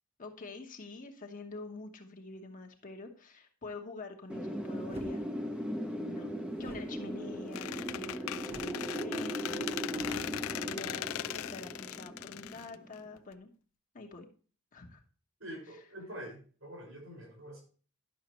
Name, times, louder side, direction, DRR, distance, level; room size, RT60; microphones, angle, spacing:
voice 1, 0.2-5.2 6.1-13.5 13.9-14.3 14.7-15.0 15.7-15.8, left 3 dB, 40° left, 3 dB, 1.1 m, -46 dB
Wind, 4.3-13.0, equal, 5° right, 0.7 m, -38 dB
sound 1, 4.9-5.2 6.5-8.1 8.5-8.9 9.2-9.3 9.6-11.1, equal, 30° right, 1.2 m, -50 dB
Squeak, 7.5-13.3, left 12 dB, 75° left, 0.3 m, -39 dB
voice 2, 15.4-17.6, right 1 dB, 70° right, 1 dB, 5.1 m, -45 dB
11.0 x 6.4 x 3.0 m, 0.39 s
head